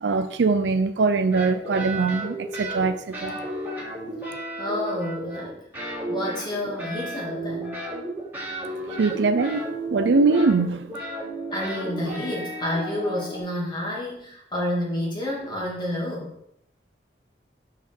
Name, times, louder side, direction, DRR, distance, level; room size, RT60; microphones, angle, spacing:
voice 1, 0.0-3.4 9.0-10.9, right 4 dB, 80° right, 0.4 m, -22 dB
sound 1, 1.3-2.9 3.1-5.5 5.7-13.4, right 1 dB, 10° right, 2.9 m, -33 dB
voice 2, 4.6-5.6 6.1-7.9 11.5-16.3, left 1 dB, 25° left, 2.5 m, -29 dB
5.7 x 4.6 x 6.1 m
head